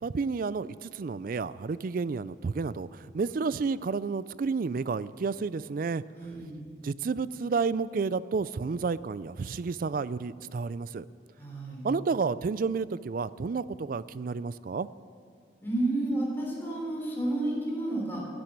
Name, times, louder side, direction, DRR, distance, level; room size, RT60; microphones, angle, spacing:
voice 1, 0.0-6.0 6.8-11.1 11.8-14.9, right 4 dB, 50° right, 17 dB, 0.4 m, -31 dB
voice 2, 6.2-6.6 11.4-11.9 15.6-18.3, right 2 dB, 10° left, -3 dB, 3.6 m, -31 dB
13.0 x 10.5 x 9.1 m, 2.2 s
head